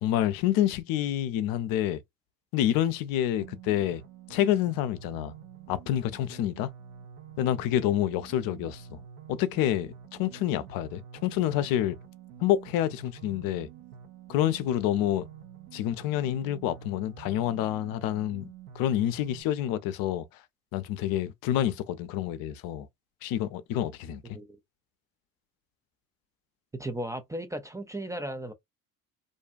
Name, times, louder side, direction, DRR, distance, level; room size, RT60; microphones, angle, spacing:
voice 1, 0.0-2.0 2.5-4.0 4.3-5.3 5.7-6.7 7.4-9.0 9.3-9.9 10.2-12.0 12.4-13.7 14.3-15.3 15.7-20.3 20.7-22.9 23.2-24.4, left 12 dB, 60° left, 0.6 m, -28 dB
sound 1, 3.4-19.4, right 8 dB, 70° right, 0.9 m, -48 dB
voice 2, 26.8-28.5, right 1 dB, 10° right, 0.3 m, -35 dB
2.6 x 2.2 x 2.4 m
hypercardioid pair, 65°, 40 cm